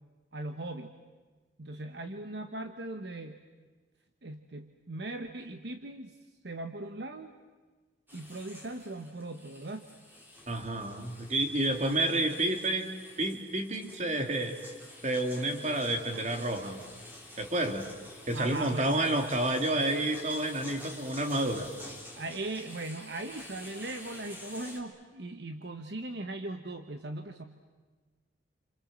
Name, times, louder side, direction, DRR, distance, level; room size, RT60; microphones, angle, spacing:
voice 1, 0.3-0.9 1.6-3.4 4.2-6.2 6.4-7.3 8.1-9.9 18.3-19.0 22.2-27.4, right 2 dB, 60° right, 7 dB, 1.2 m, -39 dB
sound 1, 8.1-24.8, left 1 dB, 10° right, 3.8 m, -49 dB
voice 2, 10.5-12.8 13.2-14.6 15.0-16.8 17.4-17.9 18.3-21.7, right 1 dB, 40° right, 5 dB, 2.6 m, -29 dB
28.5 x 27.5 x 7.6 m, 1.3 s
head